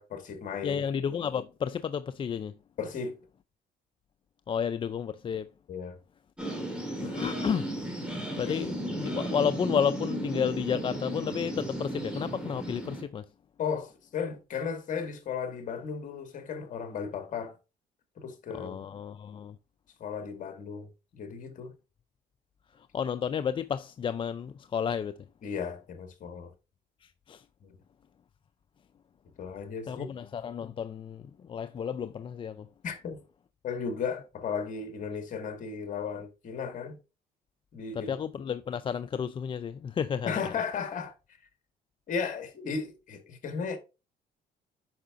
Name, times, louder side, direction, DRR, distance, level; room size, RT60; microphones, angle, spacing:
voice 1, 0.0-0.8 2.8-3.2 5.7-6.0 8.5-8.6 13.6-17.6 18.2-18.8 20.0-20.9 21.2-21.7 25.4-26.5 27.6-27.7 29.4-30.1 32.8-33.2 33.6-37.0 37.7-38.1 40.3-41.1 42.1-43.8, left 6 dB, 50° left, 1.9 m, -35 dB
voice 2, 0.6-2.6 4.5-5.5 7.0-7.7 8.4-13.2 18.5-19.6 22.8-25.2 27.0-27.4 29.9-32.7 37.9-40.3, left 7 dB, 30° left, 0.4 m, -32 dB
sound 1, 6.4-13.0, right 1 dB, 5° right, 2.5 m, -35 dB
8.5 x 5.7 x 2.5 m
cardioid pair, 110°, 17 cm